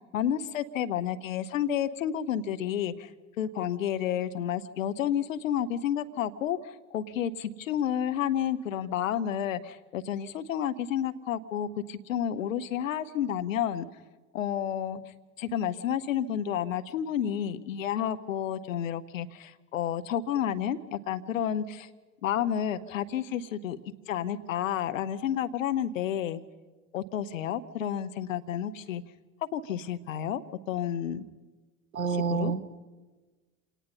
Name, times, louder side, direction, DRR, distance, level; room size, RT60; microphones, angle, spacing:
voice 1, 0.1-3.1 3.4-13.9 14.3-15.0 15.4-21.9 22.2-23.8 24.1-26.4 26.9-29.0 29.4-30.4 30.7-31.2 32.3-32.5, left 9 dB, 70° left, 11 dB, 1.0 m, -30 dB
voice 2, 31.9-32.6, right 6 dB, 90° right, 14 dB, 0.9 m, -27 dB
27.0 x 18.5 x 5.6 m, 1.3 s
figure-of-eight pair, 75°, 41 cm